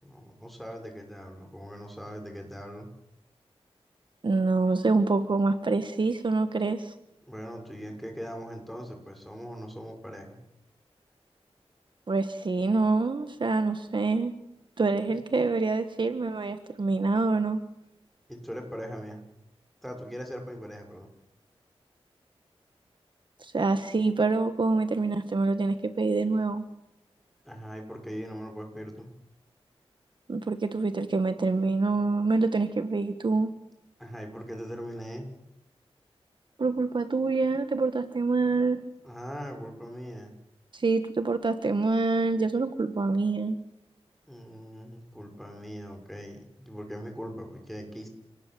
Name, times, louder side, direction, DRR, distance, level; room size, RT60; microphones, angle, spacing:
voice 1, 0.0-2.9 7.3-10.4 18.3-19.2 19.8-21.1 27.4-29.1 34.0-35.3 39.0-40.4 44.3-48.1, equal, ahead, 3 dB, 6.5 m, -40 dB
voice 2, 4.2-6.9 12.1-14.3 14.8-17.6 23.4-26.6 30.3-33.5 36.6-38.9 40.7-43.6, right 3 dB, 50° right, 9 dB, 1.5 m, -26 dB
29.5 x 19.0 x 7.9 m, 0.86 s
wide cardioid pair, 90°, 10 cm